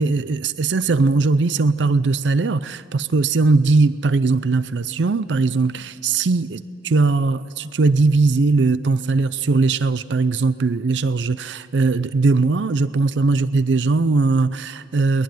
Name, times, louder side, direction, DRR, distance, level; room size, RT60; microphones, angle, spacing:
voice 1, 0.0-15.2, right 3 dB, 70° right, 15 dB, 0.5 m, -19 dB
22.0 x 20.5 x 9.3 m, 2.6 s
head